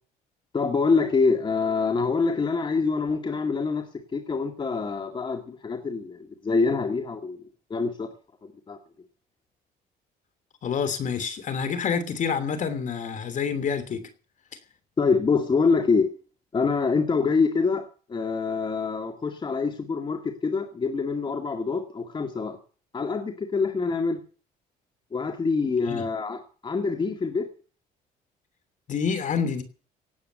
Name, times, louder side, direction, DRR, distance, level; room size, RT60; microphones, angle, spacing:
voice 1, 0.5-8.1 8.4-8.8 15.0-16.1 16.5-22.6 22.9-24.2 25.1-27.5, left 4 dB, 30° left, 2.2 m, -25 dB
voice 2, 10.6-14.1 17.2-17.3 25.9-26.0 28.9-29.6, left 6 dB, 50° left, 3.1 m, -28 dB
18.0 x 8.6 x 8.0 m
cardioid pair, 110°, 17 cm